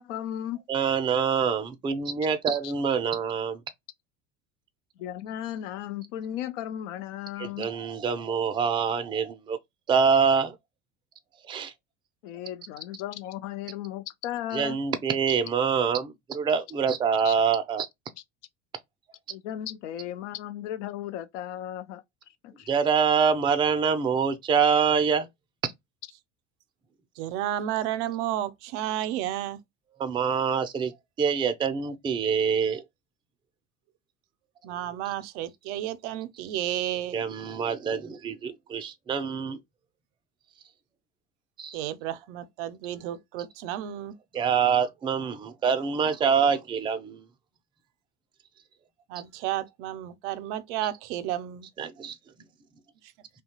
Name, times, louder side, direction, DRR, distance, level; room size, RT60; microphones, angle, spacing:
voice 1, 0.0-0.6 2.6-2.7 5.0-7.7 12.2-14.8 17.2-17.3 19.3-22.0 22.4-22.7, left 11 dB, 75° left, 0.5 m, -35 dB
voice 2, 0.7-3.6 7.4-9.6 9.9-10.5 11.5-11.7 14.5-17.9 22.7-25.3 30.0-30.9 31.2-32.8 37.1-39.6 41.6-41.8 44.3-47.2 51.8-52.2, right 6 dB, 15° right, 0.4 m, -25 dB
voice 3, 27.2-29.6 34.6-37.2 41.7-44.2 49.1-51.7, right 12 dB, 70° right, 0.5 m, -32 dB
2.8 x 2.2 x 2.7 m
hypercardioid pair, 85°, 36 cm